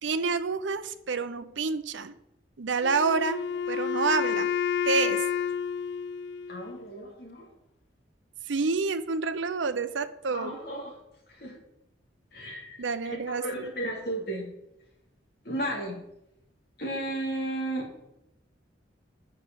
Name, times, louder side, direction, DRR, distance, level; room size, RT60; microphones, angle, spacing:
voice 1, 0.0-2.2 2.6-4.5 4.8-5.3 8.5-10.6 12.8-13.7, right 4 dB, 85° right, 10 dB, 0.7 m, -28 dB
Wind instrument woodwind instrument, 2.8-6.9, left 8 dB, 75° left, 0.3 m, -30 dB
voice 2, 6.5-7.5 10.3-10.9 11.3-11.6 12.3-14.5 15.4-16.0 16.8-17.9, right 1 dB, 55° left, -1 dB, 3.0 m, -34 dB
8.7 x 6.2 x 6.9 m, 0.83 s
head